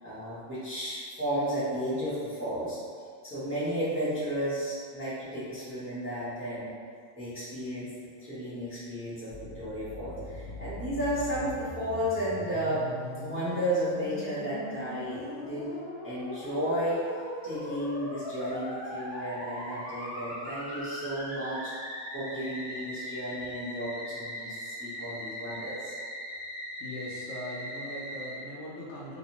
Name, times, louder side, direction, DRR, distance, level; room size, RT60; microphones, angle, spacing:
voice 1, 0.0-2.8 3.2-6.7 7.2-7.9 8.2-12.9 13.2-15.7 16.0-17.0 17.4-21.7 22.1-25.9, equal, 15° right, -14 dB, 0.7 m, -33 dB
Musical instrument, 9.3-28.4, equal, 70° right, 0.9 m, -40 dB
voice 2, 26.8-29.2, left 1 dB, 75° left, -6 dB, 0.9 m, -40 dB
2.7 x 2.0 x 2.9 m, 2.1 s
omnidirectional pair, 1.3 m